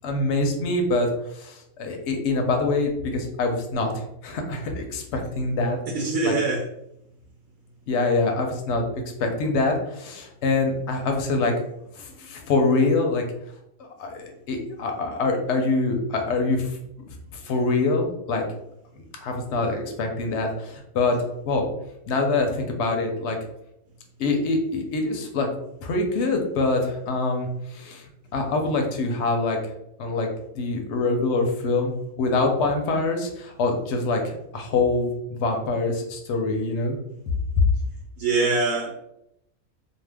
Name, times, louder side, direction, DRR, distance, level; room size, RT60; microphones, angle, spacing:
voice 1, 0.0-5.8 6.2-6.3 7.9-8.9 9.2-11.5 12.0-13.2 13.8-16.8 17.1-18.4 19.2-21.2 21.4-21.7 22.1-23.4 24.2-25.5 25.8-28.0 28.3-29.6 30.0-30.3 30.5-31.9 32.2-37.0, left 3 dB, 65° left, 3 dB, 0.8 m, -25 dB
voice 2, 5.9-6.7 38.2-38.9, right 3 dB, 75° right, -2 dB, 1.0 m, -23 dB
2.7 x 2.1 x 3.3 m, 0.81 s
omnidirectional pair, 1.5 m